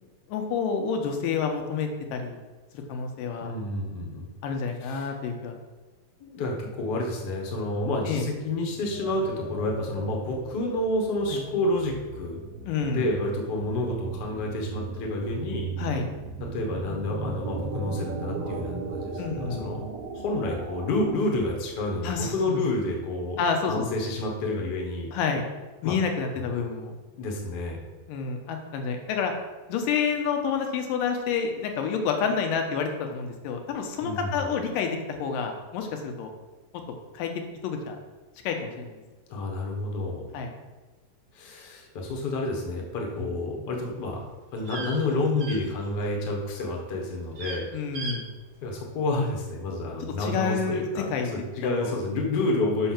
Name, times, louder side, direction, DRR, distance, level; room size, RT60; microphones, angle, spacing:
voice 1, 0.3-2.4 2.7-3.5 4.4-5.6 8.1-8.3 11.3-11.4 12.7-13.1 15.8-16.1 19.2-19.7 22.0-22.6 23.4-23.9 25.1-25.4 25.8-26.9 28.1-29.3 29.7-36.3 37.1-37.3 37.6-38.0 38.4-39.0 40.3-40.5 43.2-43.3 47.7-48.3 50.0-50.8 51.1-51.4 51.8-51.9, left 6 dB, 85° left, 4 dB, 2.5 m, -29 dB
voice 2, 3.4-4.3 4.8-5.1 6.2-12.4 12.8-15.7 16.5-19.8 20.1-25.1 25.8-25.9 26.3-26.5 27.1-27.8 34.0-34.5 39.3-40.3 41.3-44.2 44.5-47.7 48.6-52.9, left 2 dB, 60° left, 0 dB, 1.1 m, -29 dB
sound 1, 8.5-22.2, right 4 dB, 70° right, 1.5 m, -37 dB
sound 2, 43.9-46.3 46.5-46.9 47.2-47.6 47.9-48.2 48.5-48.6, right 3 dB, 45° right, 1.6 m, -38 dB
5.6 x 5.6 x 5.8 m, 1.2 s
omnidirectional pair, 3.9 m